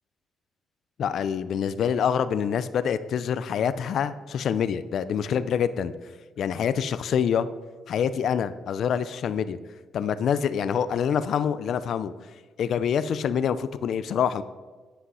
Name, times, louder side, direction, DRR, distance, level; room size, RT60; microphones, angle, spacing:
voice 1, 1.0-5.9 6.4-7.5 7.9-9.6 9.9-12.1 12.6-14.4, left 8 dB, 60° left, 14 dB, 0.4 m, -26 dB
10.0 x 5.7 x 5.5 m, 1.4 s
cardioid pair, 145°, 0 cm